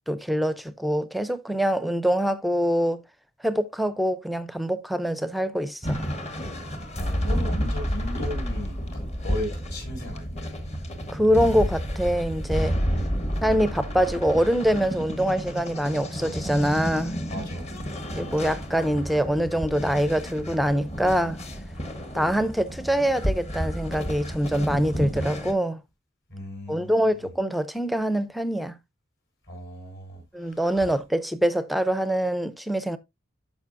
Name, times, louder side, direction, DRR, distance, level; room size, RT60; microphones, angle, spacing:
voice 1, 0.1-3.0 3.4-6.0 11.1-12.8 13.4-17.1 18.1-21.4 22.1-25.8 26.7-28.7 30.3-33.0, equal, ahead, 0.5 m, -24 dB
sound 1, 5.8-25.5, equal, 30° left, 1.2 m, -30 dB
voice 2, 6.9-8.8 9.2-10.7 12.9-13.2 17.3-17.8 26.3-27.3 29.5-30.9, left 1 dB, 55° left, 5.0 m, -36 dB
12.0 x 5.3 x 2.6 m
head